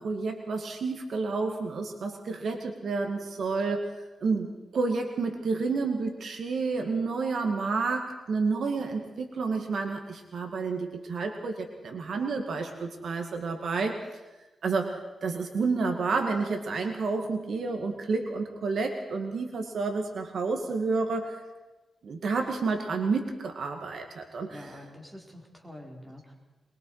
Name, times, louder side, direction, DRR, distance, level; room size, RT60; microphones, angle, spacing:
voice 1, 0.0-3.9 4.2-14.0 14.6-21.4 22.0-24.8, right 4 dB, 70° right, 4 dB, 2.2 m, -30 dB
voice 2, 24.1-26.3, left 1 dB, 10° right, 0 dB, 4.5 m, -47 dB
23.0 x 23.0 x 4.9 m, 1.1 s
wide cardioid pair, 110°, 0 cm